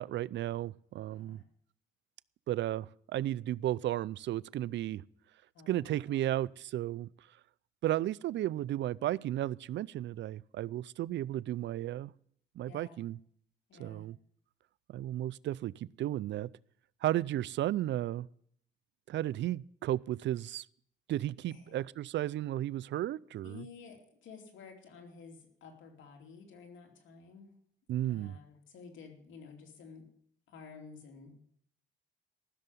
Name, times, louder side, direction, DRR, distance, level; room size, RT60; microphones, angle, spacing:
voice 1, 0.0-1.4 2.5-2.9 3.1-5.0 5.7-7.1 7.8-12.1 12.6-13.2 13.8-14.2 14.9-16.5 17.0-18.3 19.1-20.6 21.1-23.6 27.9-28.4, right 13 dB, 65° right, 0.4 m, -34 dB
voice 2, 1.1-1.4 5.5-6.4 12.6-13.0 13.7-14.1 21.5-21.8 23.4-27.5 28.1-30.1 30.5-31.5, left 5 dB, 75° left, 3.0 m, -52 dB
14.5 x 6.8 x 9.0 m
cardioid pair, 90°, 20 cm